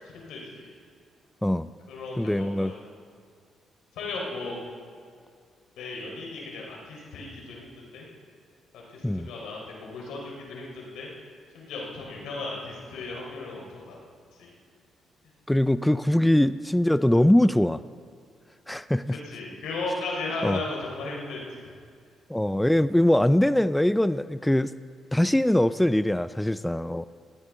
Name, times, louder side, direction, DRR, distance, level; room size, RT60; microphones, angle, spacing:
voice 1, 0.1-0.7 1.9-2.8 3.9-4.6 5.8-8.1 8.7-11.1 11.5-14.0 14.4-14.5 19.2-21.7, left 3 dB, 85° left, -2 dB, 4.0 m, -36 dB
voice 2, 2.2-2.7 9.0-9.3 15.5-17.8 18.7-19.2 20.4-20.6 22.3-24.7 25.1-27.0, left 1 dB, 5° left, 14 dB, 0.3 m, -22 dB
18.0 x 16.0 x 3.7 m, 2.2 s
cardioid pair, 75°, 0 cm